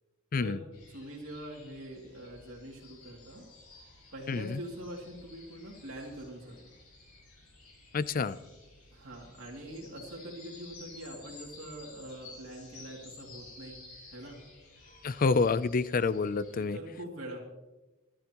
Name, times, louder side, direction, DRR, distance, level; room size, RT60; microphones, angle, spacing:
voice 1, 0.4-3.5 4.1-6.8 8.9-13.8 14.1-14.4 16.5-17.4, right 1 dB, 60° right, -2 dB, 2.6 m, -44 dB
sound 1, 0.7-16.6, left 3 dB, 70° left, 5.7 m, -54 dB
voice 2, 4.3-4.6 7.9-8.4 15.0-16.8, left 4 dB, 40° left, 16 dB, 0.4 m, -28 dB
25.5 x 11.5 x 3.0 m, 1.1 s
head